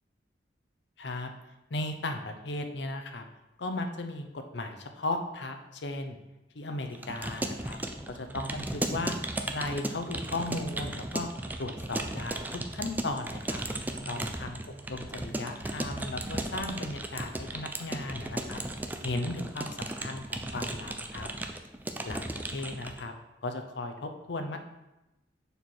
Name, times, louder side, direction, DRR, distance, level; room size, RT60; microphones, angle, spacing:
voice 1, 1.0-1.3 1.7-3.2 3.6-6.2 6.5-7.8 8.1-9.1 9.5-11.3 11.6-13.6 14.1-14.6 14.9-18.6 19.0-21.3 22.0-23.1 23.4-24.6, left 2 dB, 70° left, 6 dB, 0.7 m, -36 dB
Keyboard (musical) / Computer keyboard, 6.9-23.0, right 1 dB, 10° right, 0.4 m, -36 dB
sound 1, 7.7-19.5, right 2 dB, 85° right, 0.9 m, -50 dB
6.6 x 4.6 x 4.5 m, 0.99 s
head